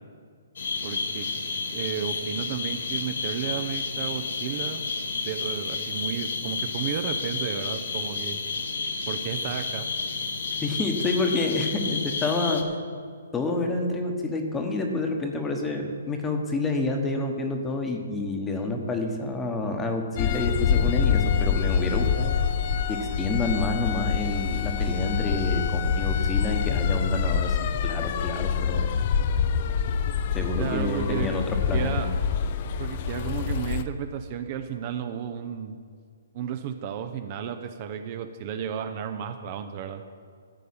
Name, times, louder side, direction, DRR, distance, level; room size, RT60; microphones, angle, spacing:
sound 1, 0.6-12.6, left 4 dB, 70° left, 1.4 m, -31 dB
voice 1, 0.8-1.3 1.7-4.8 5.1-8.4 9.1-9.9 30.6-31.3 31.7-32.1 32.8-35.8 36.3-40.0, right 8 dB, 30° right, 7 dB, 0.6 m, -33 dB
voice 2, 10.6-12.6 13.3-22.4 22.9-28.9 30.3-32.0, left 2 dB, 10° left, 3 dB, 1.1 m, -28 dB
sound 2, 20.2-33.8, left 7 dB, 35° left, 0.5 m, -26 dB
14.0 x 5.4 x 8.6 m, 2.1 s
hypercardioid pair, 165°, 0 cm